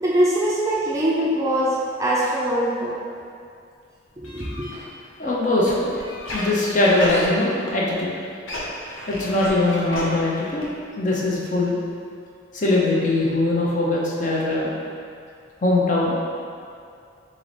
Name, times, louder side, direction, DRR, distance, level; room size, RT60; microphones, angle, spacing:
voice 1, 0.0-3.0 4.2-4.7, right 1 dB, 15° right, -5 dB, 0.4 m, -22 dB
sound 1, 4.2-8.0 8.3-10.9 11.2-11.3 11.5-11.6 11.9-12.0, left 1 dB, 85° left, 0.8 m, -33 dB
voice 2, 5.2-5.9 6.3-8.1 9.1-10.7 11.0-11.8 12.5-14.7 15.6-16.2, left 2 dB, 40° left, -4 dB, 0.6 m, -21 dB
3.9 x 3.8 x 3.2 m, 2.4 s
head